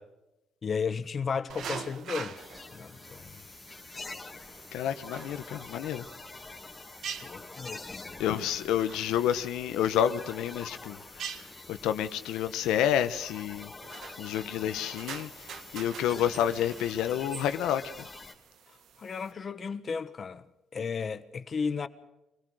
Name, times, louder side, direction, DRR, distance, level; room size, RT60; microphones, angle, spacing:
voice 1, 0.6-2.3 2.7-3.3 7.2-8.1 19.0-20.4 20.7-21.9, left 5 dB, 40° left, 1.4 m, -34 dB
sound 1, 1.5-19.3, right 7 dB, 65° right, 1.7 m, -46 dB
sound 2, 2.3-18.3, left 3 dB, 20° left, 2.3 m, -46 dB
voice 2, 4.7-6.0 8.2-11.0 11.7-13.7 14.2-15.3 15.7-17.8, left 10 dB, 90° left, 1.0 m, -29 dB
24.5 x 18.5 x 6.4 m
cardioid pair, 105°, 0 cm